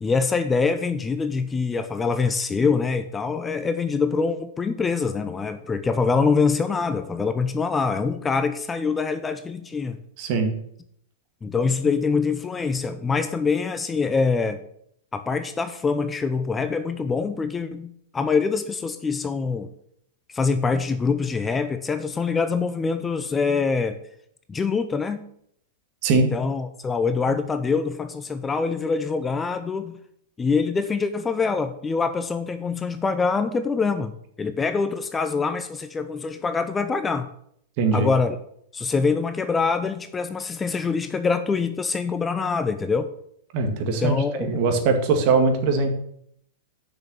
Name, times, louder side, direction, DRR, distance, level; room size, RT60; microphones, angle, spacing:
voice 1, 0.0-10.0 11.4-14.6 15.1-19.7 20.3-24.0 24.5-25.2 26.1-30.0 30.4-34.1 34.4-37.3 37.9-38.4 38.7-43.1 44.0-44.6, left 4 dB, 15° left, 10 dB, 0.6 m, -24 dB
voice 2, 10.2-10.5 26.0-26.3 37.8-38.1 43.5-45.9, right 4 dB, 50° right, 5 dB, 1.9 m, -21 dB
7.0 x 6.0 x 7.0 m, 0.70 s
hypercardioid pair, 120°, 0 cm